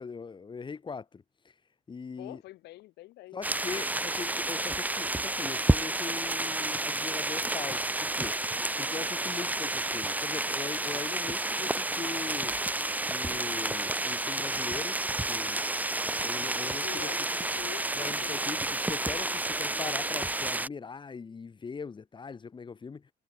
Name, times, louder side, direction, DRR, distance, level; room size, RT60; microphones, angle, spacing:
voice 1, 0.0-1.5 1.9-2.4 3.3-8.4 8.8-12.6 13.1-15.0 15.3-15.6 16.2-17.1 17.9-23.1, left 5 dB, 30° left, 2.3 m, -40 dB
voice 2, 2.2-3.4 16.8-17.9 18.2-18.5, left 17 dB, 85° left, 3.6 m, -45 dB
sound 1, 3.4-20.7, right 2 dB, 10° right, 1.5 m, -30 dB
cardioid pair, 110°, 17 cm